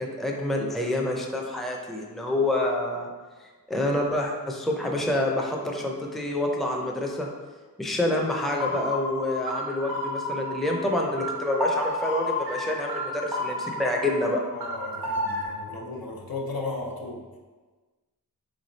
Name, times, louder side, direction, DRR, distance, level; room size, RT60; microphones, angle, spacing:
voice 1, 0.0-3.1 3.7-7.3 7.8-14.4, left 1 dB, ahead, 0 dB, 0.5 m, -27 dB
sound 1, 8.6-15.5, left 1 dB, 80° right, 0.9 m, -32 dB
voice 2, 14.5-17.3, left 3 dB, 75° left, -1 dB, 0.8 m, -35 dB
3.6 x 3.3 x 4.0 m, 1.3 s
wide cardioid pair, 70°, 36 cm